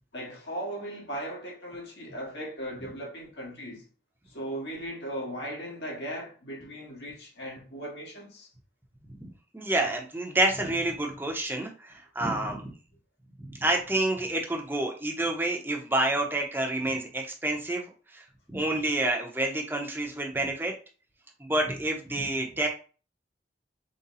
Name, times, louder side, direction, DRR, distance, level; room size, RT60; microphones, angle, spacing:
voice 1, 0.1-3.8 4.3-8.5, right 1 dB, 80° left, 1.7 m, -37 dB
voice 2, 9.5-12.7 13.5-20.7 21.4-22.7, right 1 dB, 10° right, 0.8 m, -28 dB
4.1 x 2.2 x 4.0 m
head